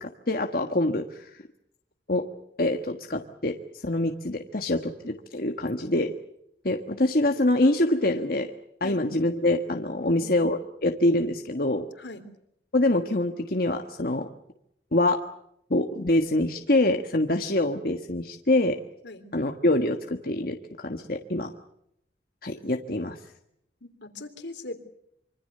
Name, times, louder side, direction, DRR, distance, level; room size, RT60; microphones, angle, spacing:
voice 1, 0.0-1.4 2.1-2.2 2.6-3.5 3.8-6.1 6.6-8.5 8.8-11.9 12.7-14.3 14.9-15.2 15.7-18.8 19.3-21.5 22.4-23.2, left 1 dB, 55° left, 4 dB, 1.5 m, -25 dB
voice 2, 10.0-10.5 12.0-12.2 19.0-19.2 23.8-24.7, left 2 dB, 85° left, 8 dB, 3.4 m, -40 dB
26.0 x 25.0 x 6.8 m, 0.76 s
head